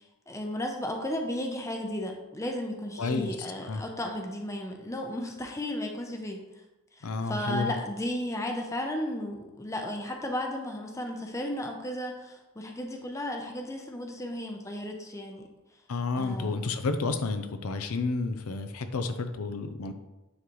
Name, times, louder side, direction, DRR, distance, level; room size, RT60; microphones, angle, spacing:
voice 1, 0.3-6.4 7.0-15.5 16.2-16.6, left 1 dB, 15° left, 2 dB, 0.7 m, -34 dB
voice 2, 3.0-3.8 7.0-7.8 15.9-19.9, left 3 dB, 75° left, 8 dB, 0.5 m, -31 dB
9.6 x 3.8 x 3.1 m, 1.0 s
head